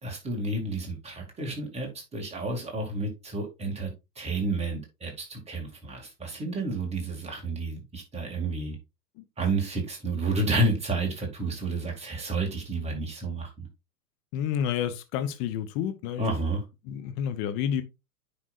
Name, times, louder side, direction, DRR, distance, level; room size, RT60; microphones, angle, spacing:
voice 1, 0.0-3.9 4.2-8.8 9.4-13.7 16.2-16.6, right 2 dB, 15° right, 2.3 m, -30 dB
voice 2, 14.3-16.3 16.9-17.8, left 9 dB, 25° left, 0.8 m, -29 dB
9.6 x 5.3 x 2.5 m
figure-of-eight pair, 100°, 47 cm